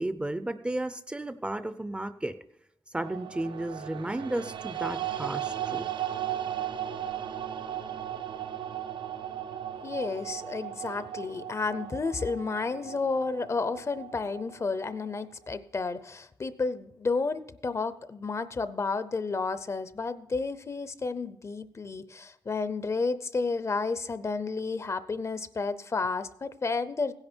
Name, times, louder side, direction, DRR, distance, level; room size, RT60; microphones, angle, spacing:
voice 1, 0.0-2.3 2.9-5.9, right 1 dB, 15° right, 11 dB, 0.5 m, -33 dB
sound 1, 3.0-15.2, right 10 dB, 80° right, 0.6 m, -36 dB
voice 2, 9.8-27.1, left 4 dB, 35° left, 14 dB, 0.6 m, -31 dB
16.5 x 10.5 x 4.4 m, 0.80 s
wide cardioid pair, 165°, 8 cm